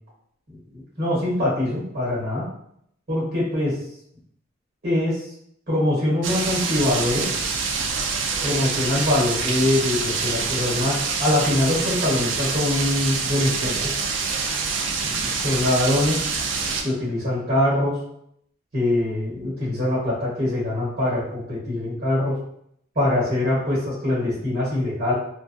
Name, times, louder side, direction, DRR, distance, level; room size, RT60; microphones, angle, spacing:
voice 1, 0.5-2.5 3.1-3.8 4.8-5.3 5.7-7.3 8.4-14.0 15.0-16.2 16.8-18.0 18.7-22.3 22.9-25.1, left 1 dB, 55° right, -6 dB, 1.3 m, -23 dB
sound 1, 6.2-16.8, right 4 dB, 70° right, 0.4 m, -26 dB
2.5 x 2.3 x 2.3 m, 0.71 s
head